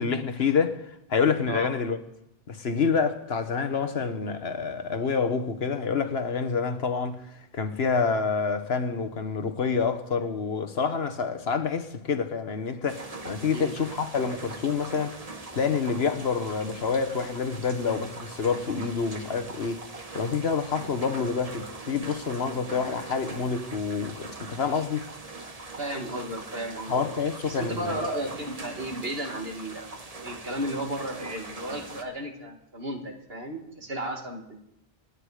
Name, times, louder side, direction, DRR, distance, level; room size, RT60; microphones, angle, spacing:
voice 1, 0.0-2.0 2.5-7.2 7.5-15.2 15.5-19.8 20.1-25.0 26.9-28.1, left 5 dB, 75° left, 1.5 m, -27 dB
sound 1, 12.9-32.0, right 2 dB, 35° right, 1.4 m, -42 dB
voice 2, 25.8-27.2 27.5-29.9 30.2-34.6, right 1 dB, 70° right, 2.3 m, -34 dB
27.0 x 9.8 x 4.9 m
omnidirectional pair, 1.1 m